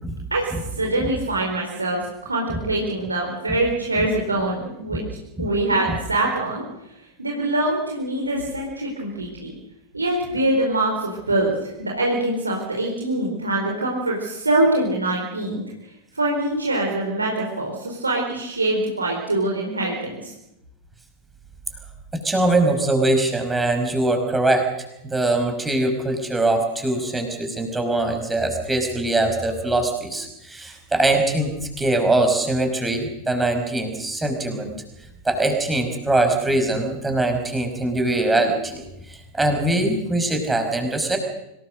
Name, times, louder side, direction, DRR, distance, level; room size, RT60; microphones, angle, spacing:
voice 1, 0.3-6.6 7.2-9.5 9.9-15.6 16.1-20.3, right 2 dB, 80° right, -1 dB, 4.4 m, -24 dB
voice 2, 22.1-24.7 25.0-31.5 31.8-34.7 35.2-41.2, right 2 dB, 10° right, 5 dB, 5.5 m, -22 dB
25.5 x 18.5 x 6.7 m, 0.87 s
figure-of-eight pair, 90°, 0 cm